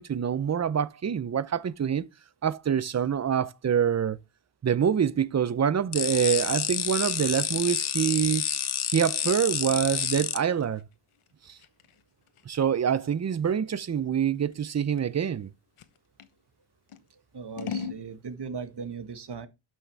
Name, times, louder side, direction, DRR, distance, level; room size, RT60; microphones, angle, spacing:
voice 1, 0.0-2.1 2.4-4.2 4.6-8.4 8.9-10.8 11.5-11.6 12.5-15.5, right 8 dB, 35° right, 0.6 m, -26 dB
sound 1, 5.9-10.4, left 9 dB, 50° left, 0.9 m, -29 dB
Scissors, 10.2-16.3 16.9-18.0, left 6 dB, 85° left, 1.1 m, -41 dB
voice 2, 17.3-19.5, right 5 dB, 55° right, 1.5 m, -38 dB
12.0 x 6.2 x 3.4 m
wide cardioid pair, 125°, 49 cm